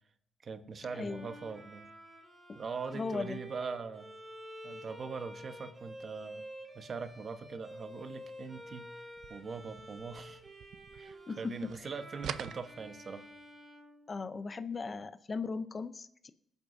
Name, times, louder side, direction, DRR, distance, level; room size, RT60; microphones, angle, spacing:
voice 1, 0.4-1.9 2.5-4.1 4.6-6.4 6.7-8.9 9.3-10.4 10.9-13.3, right 5 dB, 45° right, 8 dB, 1.1 m, -42 dB
Bowed string instrument, 0.8-14.7, equal, 25° right, 2.5 m, -50 dB
voice 2, 0.9-1.3 2.5-2.6 2.9-3.4 11.3-11.6 14.1-16.3, left 4 dB, 35° left, 11 dB, 0.6 m, -37 dB
sound 1, 9.1-11.4 11.6-13.4, right 9 dB, 70° right, 0.4 m, -46 dB
22.5 x 8.1 x 2.7 m, 0.72 s
cardioid pair, 90°, 0 cm